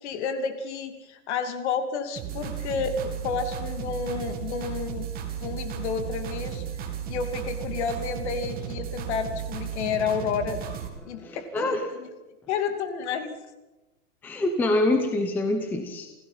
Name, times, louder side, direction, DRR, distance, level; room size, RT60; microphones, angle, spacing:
voice 1, 0.0-5.1 5.4-6.6 7.1-10.6 11.0-12.1 12.5-13.3, left 6 dB, 45° left, 7 dB, 2.8 m, -30 dB
sound 1, 2.2-10.9, right 9 dB, 20° right, 2.5 m, -34 dB
voice 2, 11.2-11.8 14.2-16.1, left 2 dB, 5° left, 5 dB, 0.8 m, -25 dB
28.5 x 16.0 x 5.7 m, 1.0 s
supercardioid pair, 165°, 45 cm